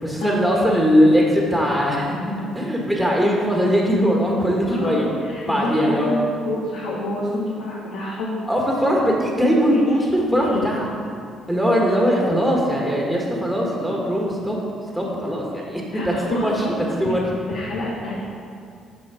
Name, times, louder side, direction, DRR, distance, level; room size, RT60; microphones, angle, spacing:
voice 1, 0.0-2.1 2.5-5.1 5.5-6.1 8.5-10.9 11.5-14.6 14.9-16.5 17.0-17.2, equal, ahead, -3 dB, 1.5 m, -20 dB
voice 2, 4.7-8.3 9.7-10.7 12.2-12.3 15.9-16.8 17.0-17.1 17.5-18.2, left 1 dB, 80° left, -5 dB, 1.1 m, -28 dB
7.3 x 4.3 x 4.9 m, 2.4 s
supercardioid pair, 65°, 0 cm